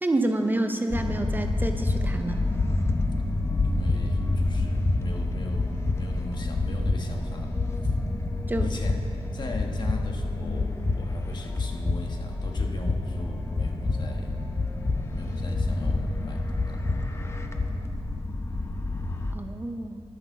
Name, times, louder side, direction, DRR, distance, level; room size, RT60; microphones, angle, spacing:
voice 1, 0.0-2.5 8.5-8.8 19.3-20.0, right 2 dB, 20° right, 6 dB, 0.6 m, -28 dB
sound 1, 0.9-19.3, left 2 dB, 25° left, 0.9 m, -28 dB
voice 2, 3.6-7.9 8.6-9.0 9.3-14.4 15.1-16.8, left 2 dB, 45° left, 3 dB, 1.3 m, -39 dB
11.0 x 9.6 x 7.2 m, 2.5 s
wide cardioid pair, 130°, 11 cm